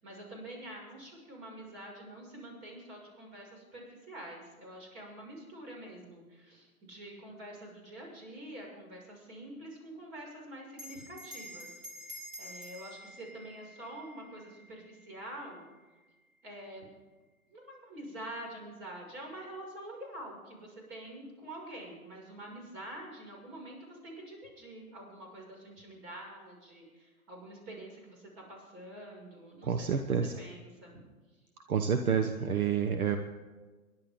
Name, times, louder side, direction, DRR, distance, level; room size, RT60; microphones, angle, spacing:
voice 1, 0.0-11.7 12.4-15.6 16.4-16.9 17.5-29.9 30.4-31.0, right 1 dB, 35° right, 0 dB, 6.1 m, -46 dB
Bell, 10.7-15.6, equal, 20° right, 3.7 m, -48 dB
voice 2, 29.6-30.4 31.7-33.2, right 7 dB, 75° right, 7 dB, 1.2 m, -29 dB
24.0 x 11.5 x 3.8 m, 1.3 s
hypercardioid pair, 130°, 43 cm